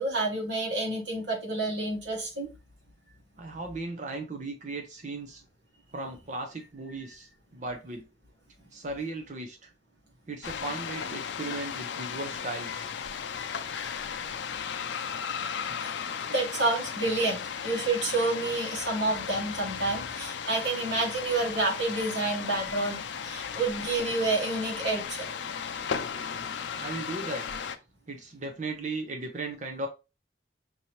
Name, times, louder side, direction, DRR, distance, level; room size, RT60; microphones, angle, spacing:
voice 1, 0.0-2.5 15.8-25.3, right 2 dB, 70° right, 1.6 m, -29 dB
voice 2, 3.4-5.4 5.9-8.1 8.7-9.7 10.3-12.9 26.8-27.5 28.1-29.9, right 2 dB, 40° right, 0.7 m, -36 dB
sound 1, 10.4-27.8, left 7 dB, 75° left, 0.5 m, -35 dB
5.3 x 2.8 x 3.1 m
head